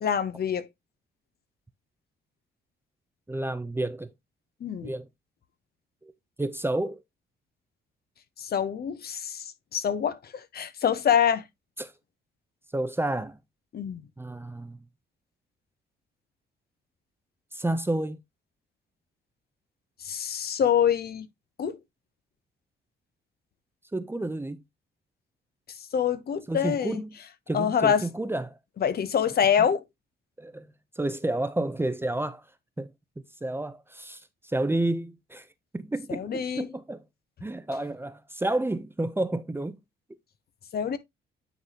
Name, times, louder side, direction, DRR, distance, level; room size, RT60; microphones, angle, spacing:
voice 1, 0.0-0.7 4.6-4.9 8.4-11.5 13.7-14.0 20.0-21.3 21.6-21.8 25.9-27.0 27.5-28.0 28.8-29.8 36.1-36.7 40.7-41.0, left 8 dB, 50° left, 0.8 m, -26 dB
voice 2, 3.3-4.1 4.8-5.1 6.0-6.1 6.4-7.0 11.8-11.9 12.7-13.4 14.2-14.8 17.5-18.2 23.9-24.6 26.5-27.2 27.5-28.6 30.4-30.7 31.0-32.4 32.8-32.9 33.4-35.5 35.7-37.0 37.4-39.8, right 2 dB, 10° right, 0.6 m, -30 dB
9.4 x 4.0 x 2.9 m
cardioid pair, 90°, 20 cm